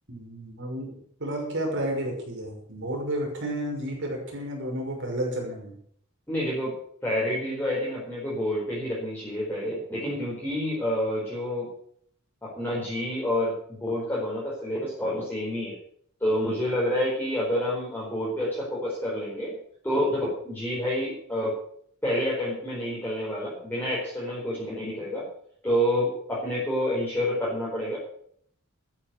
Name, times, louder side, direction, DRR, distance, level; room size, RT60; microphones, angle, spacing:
voice 1, 0.1-5.8, right 1 dB, 60° right, 1 dB, 5.9 m, -31 dB
voice 2, 6.3-6.7 7.0-11.7 12.4-15.8 16.2-19.5 19.8-21.5 22.0-25.2 25.6-28.0, equal, 10° left, -6 dB, 4.6 m, -28 dB
13.5 x 9.9 x 6.8 m, 0.63 s
head